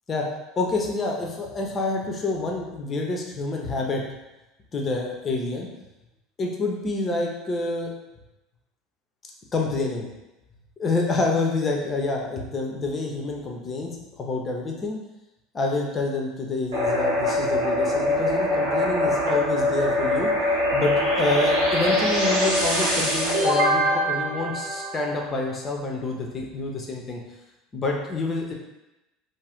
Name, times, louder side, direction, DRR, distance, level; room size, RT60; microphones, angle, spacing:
voice 1, 0.6-4.0 4.7-5.7 6.4-7.9 9.5-10.1 10.8-15.0 15.5-20.3 20.7-27.2 27.7-28.5, left 3 dB, 30° left, 0 dB, 0.6 m, -27 dB
sound 1, 16.7-25.4, left 1 dB, 80° right, 0.9 m, -23 dB
2.6 x 2.1 x 3.4 m, 0.98 s
hypercardioid pair, 75°, 0 cm